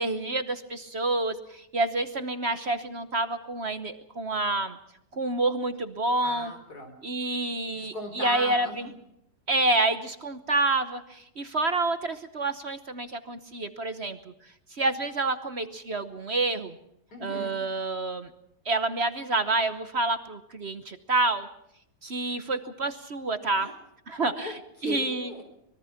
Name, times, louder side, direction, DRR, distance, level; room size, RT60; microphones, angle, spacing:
voice 1, 0.0-4.8 5.1-6.5 7.0-8.9 9.5-14.2 14.7-16.8 17.2-18.3 18.6-21.5 22.0-23.7 24.1-24.5 24.8-25.3, right 2 dB, 40° right, 10 dB, 1.1 m, -28 dB
voice 2, 6.2-7.0 7.7-8.8 17.1-17.5 23.6-23.7 24.3-25.4, left 2 dB, 55° left, 6 dB, 4.5 m, -38 dB
24.5 x 22.0 x 5.8 m, 0.78 s
omnidirectional pair, 2.0 m